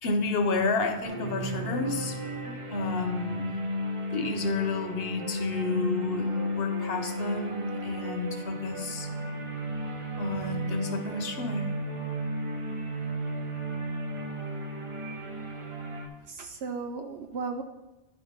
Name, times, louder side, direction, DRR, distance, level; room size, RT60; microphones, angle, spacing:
voice 1, 0.0-3.6 4.1-9.1 10.2-11.7, left 3 dB, 70° left, 6 dB, 1.1 m, -31 dB
sound 1, 1.0-16.1, equal, 35° right, 0.8 m, -34 dB
voice 2, 16.2-17.6, right 4 dB, 80° right, 5 dB, 0.9 m, -35 dB
10.0 x 3.7 x 5.0 m, 1.0 s
omnidirectional pair, 1.1 m